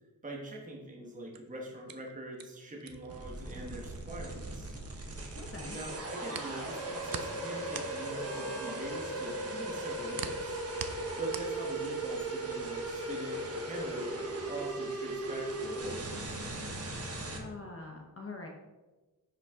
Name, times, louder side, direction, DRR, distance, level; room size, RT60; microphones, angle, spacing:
voice 1, 0.2-4.8 5.7-10.6 11.2-14.1 14.4-16.4, right 1 dB, 20° right, -2 dB, 1.2 m, -43 dB
sound 1, 1.1-5.3 5.6-12.2, right 7 dB, 60° right, 0.7 m, -44 dB
sound 2, 3.1-17.4, right 2 dB, 35° right, 1.2 m, -38 dB
voice 2, 5.4-5.8 17.3-18.5, left 3 dB, 35° left, 1 dB, 0.8 m, -44 dB
10.0 x 5.3 x 3.6 m, 1.2 s
wide cardioid pair, 175°, 40 cm